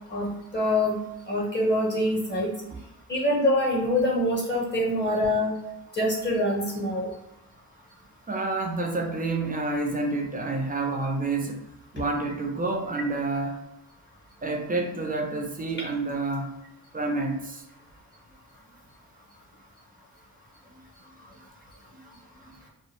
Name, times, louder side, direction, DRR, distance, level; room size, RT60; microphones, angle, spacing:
voice 1, 0.1-1.0 1.3-2.5 3.1-5.5 5.9-7.1, left 1 dB, 30° left, -3 dB, 0.7 m, -25 dB
voice 2, 8.3-11.6 11.9-13.6 14.4-16.6 16.9-17.6 21.9-22.0 22.4-22.5, right 3 dB, 25° right, 3 dB, 0.5 m, -29 dB
2.1 x 2.1 x 3.0 m, 0.89 s
cardioid pair, 70°, 37 cm